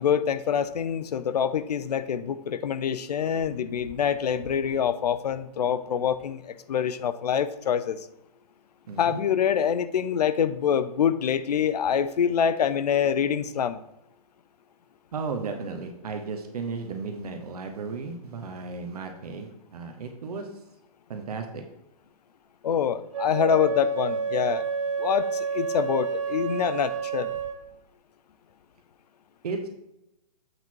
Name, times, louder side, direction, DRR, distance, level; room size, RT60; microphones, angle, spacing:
voice 1, 0.0-8.0 9.0-13.8 22.6-24.6 25.0-27.3, left 8 dB, 80° left, 14 dB, 0.6 m, -25 dB
voice 2, 8.9-9.2 15.1-20.5 21.1-21.6 29.4-29.7, right 4 dB, 70° right, 5 dB, 1.2 m, -34 dB
Wind instrument woodwind instrument, 23.1-27.6, right 5 dB, 50° right, 1.1 m, -29 dB
8.0 x 4.0 x 4.6 m, 0.86 s
hypercardioid pair, 160°, 20 cm